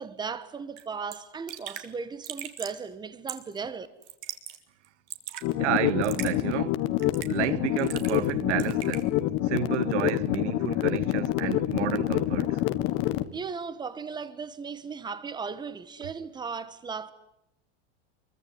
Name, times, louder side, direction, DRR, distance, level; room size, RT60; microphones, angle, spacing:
voice 1, 0.0-3.9 13.3-17.1, right 5 dB, 10° right, 1.4 m, -36 dB
Raindrop / Drip, 0.8-0.9 1.1-1.2 1.5-1.9 2.2-2.8 3.3-3.6 4.0-4.6 4.8-5.4 6.0-6.3 7.0-7.4 7.8-8.3 8.6-9.0, right 12 dB, 50° right, 3.5 m, -38 dB
sound 1, 5.4-13.2, left 14 dB, 35° left, 1.6 m, -27 dB
voice 2, 5.6-6.9 7.3-9.1 9.4-12.6, right 15 dB, 70° right, 1.3 m, -31 dB
26.5 x 23.5 x 9.6 m
supercardioid pair, 160°, 36 cm